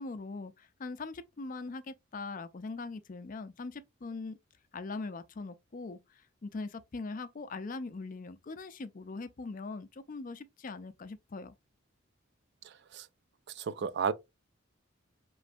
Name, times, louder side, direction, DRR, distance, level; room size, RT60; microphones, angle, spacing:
voice 1, 0.0-4.4 4.7-11.5, left 3 dB, 40° left, 0.4 m, -41 dB
voice 2, 13.6-14.1, right 6 dB, 55° right, 0.4 m, -32 dB
5.2 x 3.1 x 2.5 m
head